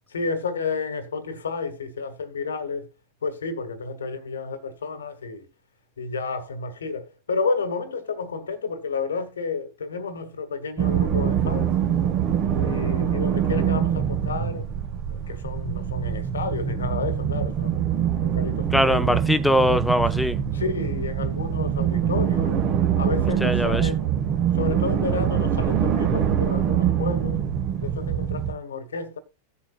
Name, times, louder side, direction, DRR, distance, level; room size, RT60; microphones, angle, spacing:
voice 1, 0.1-2.9 3.2-5.5 6.0-11.7 12.5-14.7 15.1-17.8 18.2-19.3 20.5-22.6 23.0-24.1 24.5-27.4 27.8-29.2, left 4 dB, 70° left, 1.4 m, -31 dB
sound 1, 10.8-28.5, right 9 dB, 40° right, 1.5 m, -24 dB
voice 2, 18.7-20.4 23.4-23.8, equal, 5° left, 0.7 m, -21 dB
17.5 x 7.1 x 2.4 m
figure-of-eight pair, 90°, 0 cm